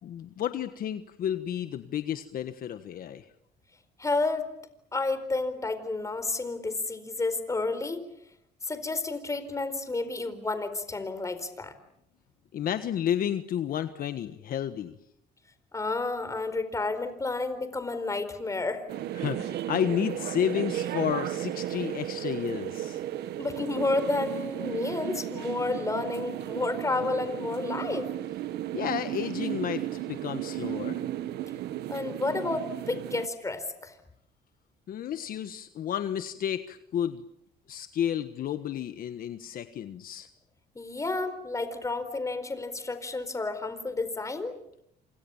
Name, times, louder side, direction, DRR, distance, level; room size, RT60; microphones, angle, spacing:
voice 1, 0.0-3.2 12.5-14.9 19.2-23.0 28.7-29.8 30.1-31.0 34.9-37.2 37.7-40.3, left 10 dB, 60° left, 10 dB, 1.4 m, -31 dB
voice 2, 4.0-4.4 4.9-8.0 8.6-11.7 15.7-18.8 23.4-28.1 31.9-33.9 40.7-44.6, left 3 dB, 20° left, 11 dB, 4.4 m, -31 dB
sound 1, 18.9-33.3, right 13 dB, 75° right, 1.4 m, -34 dB
27.5 x 27.5 x 7.3 m, 0.76 s
cardioid pair, 110°, 17 cm